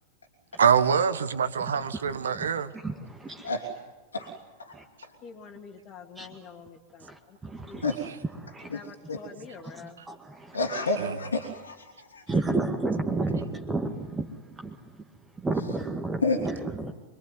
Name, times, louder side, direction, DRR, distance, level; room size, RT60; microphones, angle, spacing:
voice 1, 0.6-2.7 11.0-11.1, right 7 dB, 65° right, 14 dB, 1.4 m, -24 dB
voice 2, 2.8-3.5 4.7-4.8 6.2-6.4 7.0-7.8 8.4-8.7 9.6-10.6 12.3-14.3 14.6-15.1 15.4-16.9, right 3 dB, 15° right, 3 dB, 1.9 m, -31 dB
voice 3, 5.2-7.8 8.7-10.0, left 6 dB, 35° left, 5 dB, 2.5 m, -47 dB
voice 4, 8.7-9.2 10.5-12.2 16.2-16.4, left 3 dB, 75° left, 0 dB, 3.0 m, -30 dB
26.0 x 22.5 x 9.5 m, 1.1 s
figure-of-eight pair, 90°, 0 cm